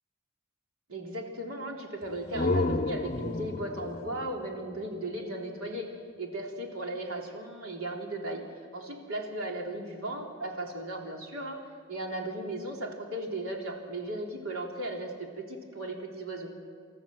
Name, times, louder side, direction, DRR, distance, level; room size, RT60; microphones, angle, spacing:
voice 1, 0.9-5.9 6.2-8.4 8.7-11.6 11.9-16.5, right 1 dB, 90° right, 1 dB, 3.5 m, -36 dB
sound 1, 2.0-5.7, left 2 dB, 35° left, 0.6 m, -32 dB
29.5 x 13.5 x 7.8 m, 2.2 s
head